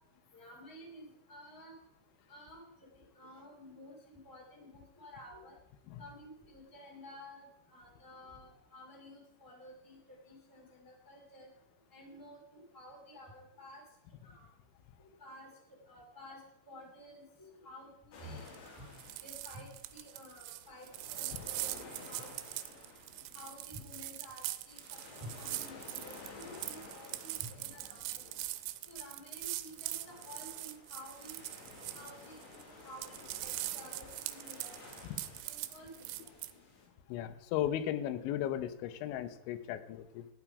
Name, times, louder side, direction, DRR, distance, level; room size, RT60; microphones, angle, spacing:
voice 1, 0.3-1.7 2.3-5.5 6.0-11.5 11.9-13.8 14.2-14.4 15.2-16.4 16.7-18.8 19.2-22.8 23.3-28.3 28.9-31.4 31.9-34.8 35.4-36.4, equal, 5° left, -2 dB, 1.8 m, -52 dB
sound 1, 18.1-36.9, left 4 dB, 65° left, 4.5 m, -54 dB
sound 2, 18.4-18.7 18.9-32.6 32.9-36.5, right 17 dB, 90° right, 3.1 m, -42 dB
voice 2, 37.1-40.3, left 11 dB, 80° left, 10 dB, 3.1 m, -36 dB
12.0 x 9.1 x 4.8 m, 0.86 s
omnidirectional pair, 5.5 m